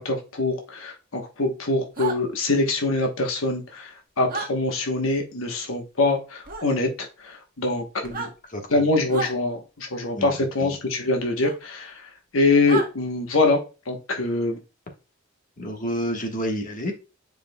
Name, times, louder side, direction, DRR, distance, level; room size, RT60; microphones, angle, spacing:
voice 1, 0.0-8.3 8.7-12.1 12.3-13.6 13.9-14.6, left 2 dB, 80° left, 1.1 m, -24 dB
sound 1, 2.0-2.2 4.3-4.5 6.5-6.7 8.0-8.3 9.1-9.3 11.4-11.5 12.7-12.9, right 4 dB, 45° right, 1.5 m, -30 dB
voice 2, 8.5-8.9 10.2-10.7 15.6-16.9, equal, 40° left, 1.4 m, -30 dB
9.2 x 5.0 x 2.3 m
head